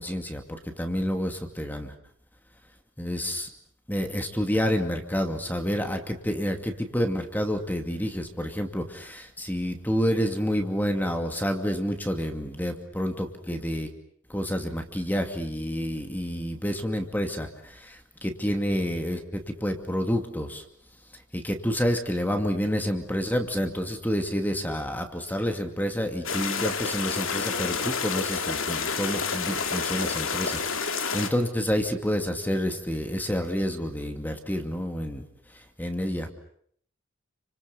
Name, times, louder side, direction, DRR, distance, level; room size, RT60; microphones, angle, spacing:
voice 1, 0.0-1.9 3.0-3.5 3.9-13.9 14.3-20.6 21.3-35.2 35.8-36.3, equal, 10° left, 5 dB, 2.5 m, -29 dB
sound 1, 26.2-31.3, left 5 dB, 80° left, 2.8 m, -29 dB
30.0 x 26.0 x 7.0 m, 0.65 s
head